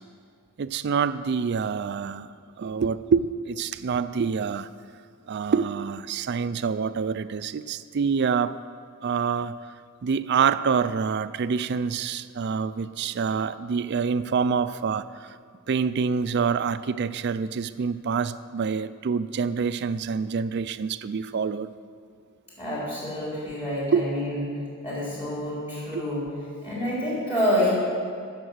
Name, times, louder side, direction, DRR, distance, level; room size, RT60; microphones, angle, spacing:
voice 1, 0.6-2.3 2.6-4.7 5.3-8.6 9.0-9.6 10.0-15.4 15.7-21.7 23.9-24.0 25.9-26.0, right 6 dB, 50° right, 13 dB, 0.4 m, -26 dB
voice 2, 22.6-24.4 24.8-26.3 26.6-27.7, equal, 25° left, -8 dB, 3.7 m, -27 dB
16.0 x 6.7 x 6.3 m, 2.1 s
head